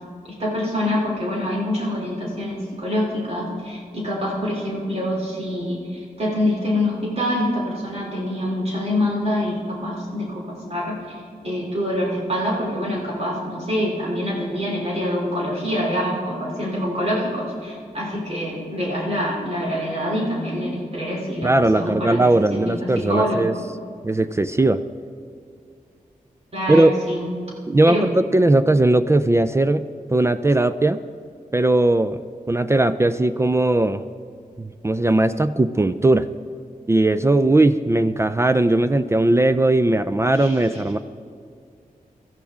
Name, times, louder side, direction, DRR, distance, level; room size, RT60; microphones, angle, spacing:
voice 1, 0.4-11.1 11.4-23.6 26.5-27.3 27.9-28.1 40.3-40.8, left 1 dB, 45° right, -3 dB, 3.0 m, -25 dB
voice 2, 21.4-23.5 24.0-24.8 26.7-26.9 27.7-31.0 31.5-32.2 32.5-34.0 34.6-36.3 36.9-41.0, right 2 dB, 20° right, 12 dB, 0.3 m, -18 dB
17.0 x 13.5 x 3.6 m, 2.3 s
wide cardioid pair, 95°, 14 cm